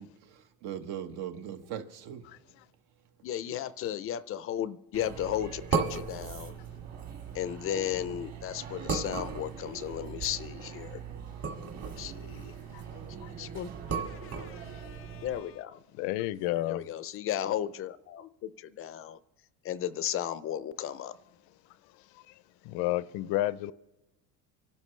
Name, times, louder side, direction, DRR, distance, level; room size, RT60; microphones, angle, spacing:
voice 1, 0.0-2.2, right 9 dB, 75° right, 1.2 m, -40 dB
voice 2, 3.2-6.5 7.3-11.0 12.0-12.5 13.4-15.8 16.7-19.2 19.6-21.1, left 11 dB, 35° left, 0.4 m, -35 dB
sound 1, 4.9-15.4, right 5 dB, 40° right, 2.0 m, -37 dB
voice 3, 16.0-16.9 22.6-23.7, left 16 dB, 85° left, 0.6 m, -31 dB
25.0 x 12.0 x 3.2 m
cardioid pair, 150°, 39 cm